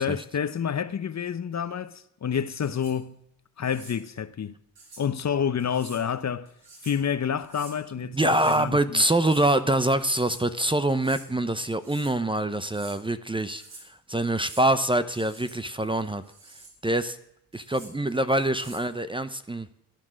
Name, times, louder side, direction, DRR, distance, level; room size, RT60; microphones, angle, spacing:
voice 1, 0.0-3.2 3.6-4.5 5.0-6.5 6.8-9.0, left 7 dB, 40° left, 0.9 m, -29 dB
sound 1, 2.4-3.0 3.6-4.0 4.8-5.1 5.6-6.0 6.5-7.0 7.4-7.8 8.2-8.7 9.1-9.5 10.0-10.4 10.9-11.3 11.7-12.2 12.5-13.0 13.4-13.9 14.2-14.7 15.1-15.6 16.0-16.8 17.5-17.9 18.4-18.9, right 3 dB, 60° right, 7.5 m, -48 dB
voice 2, 8.1-16.2 16.8-17.2 17.5-19.7, right 1 dB, 10° right, 0.8 m, -25 dB
15.0 x 10.0 x 6.3 m
cardioid pair, 80°, 41 cm